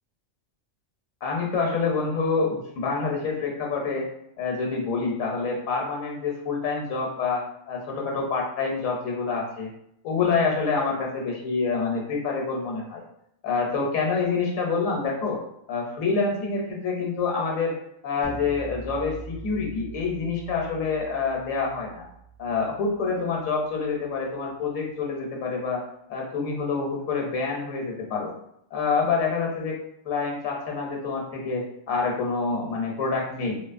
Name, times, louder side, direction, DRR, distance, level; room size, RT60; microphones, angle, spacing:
voice 1, 1.2-4.1 4.4-9.7 10.0-13.0 13.4-15.4 15.7-17.8 18.0-22.0 22.4-25.8 26.1-28.3 28.7-29.8 30.0-33.6, left 4 dB, 75° left, 0 dB, 1.0 m, -27 dB
sound 1, 18.2-24.2, right 3 dB, 10° right, 0.5 m, -43 dB
2.7 x 2.3 x 2.4 m, 0.76 s
omnidirectional pair, 1.4 m